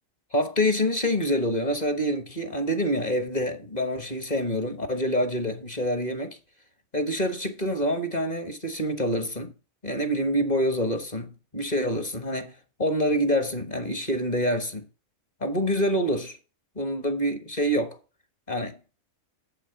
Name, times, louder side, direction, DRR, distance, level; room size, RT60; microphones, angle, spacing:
voice 1, 0.3-6.4 6.9-9.5 9.8-14.8 15.4-16.4 16.7-18.0 18.5-18.8, equal, 30° left, 1.4 m, -26 dB
7.8 x 5.8 x 6.8 m
omnidirectional pair, 1.4 m